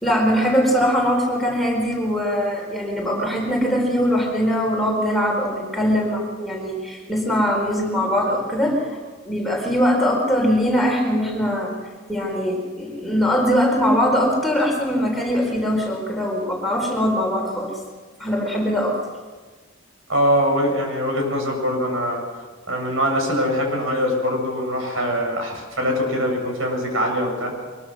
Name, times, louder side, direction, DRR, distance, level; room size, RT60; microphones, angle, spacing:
voice 1, 0.0-9.0 9.2-11.7 12.1-17.8 18.2-19.0, equal, ahead, 0 dB, 4.2 m, -21 dB
voice 2, 20.1-22.2 22.7-27.5, equal, 80° right, 2 dB, 7.0 m, -22 dB
23.5 x 22.5 x 6.4 m, 1.4 s
head